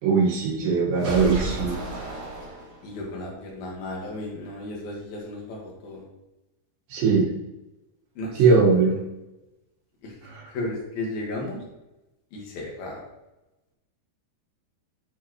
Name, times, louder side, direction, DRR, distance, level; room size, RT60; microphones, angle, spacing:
voice 1, 0.0-1.8 6.9-7.3 8.4-9.0 10.3-10.5, right 4 dB, 75° right, -3 dB, 4.0 m, -20 dB
sound 1, 1.0-3.1, right 2 dB, 40° right, 4.2 m, -32 dB
voice 2, 2.8-6.0 8.2-8.4 10.0-10.1 10.5-11.6 12.3-13.0, left 2 dB, 60° left, -2 dB, 3.6 m, -34 dB
9.5 x 7.2 x 3.2 m, 0.97 s
omnidirectional pair, 5.2 m